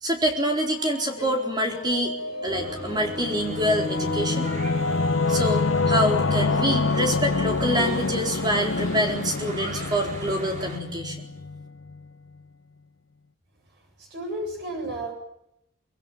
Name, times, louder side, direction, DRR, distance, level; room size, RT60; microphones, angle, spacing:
voice 1, 0.0-2.1 2.4-4.5 5.3-11.3, equal, 20° right, 2 dB, 4.0 m, -26 dB
sound 1, 0.7-5.9, left 1 dB, 25° left, 7.4 m, -37 dB
Church bell / Traffic noise roadway noise, 2.4-10.8, right 1 dB, 40° right, 5.1 m, -39 dB
Singing / Musical instrument, 2.9-12.1, left 3 dB, 80° left, 0.9 m, -26 dB
voice 2, 14.0-15.1, right 1 dB, 55° right, 2 dB, 7.9 m, -32 dB
24.5 x 20.5 x 9.1 m, 0.79 s
head